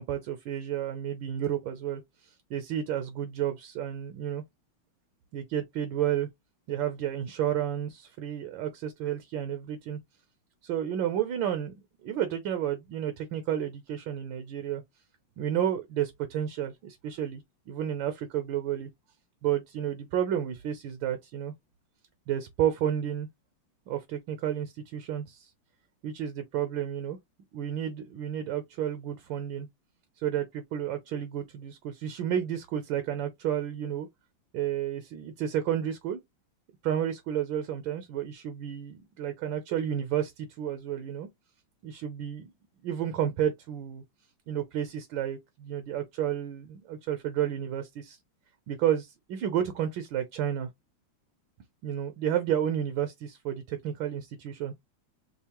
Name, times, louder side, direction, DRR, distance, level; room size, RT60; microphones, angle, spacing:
voice 1, 0.0-2.0 2.5-4.4 5.3-6.3 6.7-10.0 10.6-11.7 12.0-14.8 15.4-18.9 19.4-21.5 22.3-23.3 23.9-25.5 26.0-27.2 27.5-29.7 30.2-34.1 34.5-36.2 36.8-41.3 41.8-42.5 42.8-44.0 44.5-48.2 48.7-50.7 51.8-54.7, right 10 dB, 75° right, 1.4 m, -31 dB
5.6 x 2.0 x 2.9 m
omnidirectional pair, 2.2 m